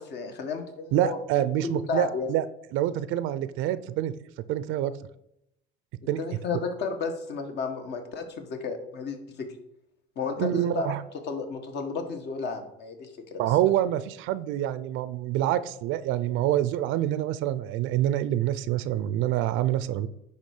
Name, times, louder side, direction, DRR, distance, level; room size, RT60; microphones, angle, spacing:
voice 1, 0.0-1.2 1.6-2.3 6.2-9.5 10.1-10.9 11.3-13.4, left 5 dB, 55° left, 5 dB, 1.7 m, -32 dB
voice 2, 0.9-2.4 2.7-4.1 4.5-4.9 6.1-6.2 10.4-11.0 13.4-20.1, right 12 dB, 70° right, 15 dB, 0.6 m, -26 dB
9.9 x 3.6 x 6.6 m, 0.81 s
cardioid pair, 115°, 21 cm